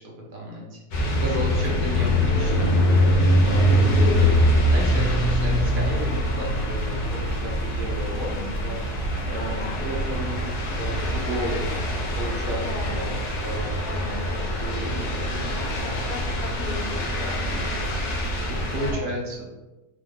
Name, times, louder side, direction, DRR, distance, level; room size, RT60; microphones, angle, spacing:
voice 1, 0.0-2.8 3.4-4.2 4.6-8.3 8.6-8.8 9.3-11.6 12.2-13.7 14.0-15.8 18.5-19.5, right 1 dB, 65° right, -2 dB, 0.5 m, -33 dB
sound 1, 0.9-18.9, equal, 85° left, 1.3 m, -23 dB
voice 2, 8.1-8.6 9.3-9.8 12.5-13.1 13.8-14.8 15.8-17.7 18.8-19.1, left 2 dB, 65° left, 2 dB, 0.8 m, -38 dB
3.5 x 2.2 x 3.6 m, 1.1 s
omnidirectional pair, 1.6 m